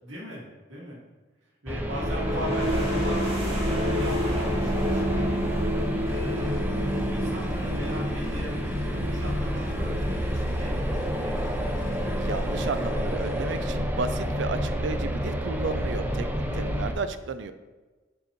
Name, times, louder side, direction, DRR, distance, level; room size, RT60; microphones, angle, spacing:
voice 1, 0.0-1.0 1.6-5.7 6.0-6.6 6.9-8.5 8.8-11.4, equal, 85° right, -4 dB, 2.1 m, -38 dB
sound 1, 1.7-16.9, equal, 10° right, 0.6 m, -29 dB
sound 2, 1.9-13.4, equal, 30° right, 2.0 m, -31 dB
sound 3, 6.1-13.6, left 3 dB, 90° left, 0.8 m, -44 dB
voice 2, 12.2-17.5, right 4 dB, 70° right, 11 dB, 0.5 m, -33 dB
8.0 x 6.4 x 3.1 m, 1.2 s
head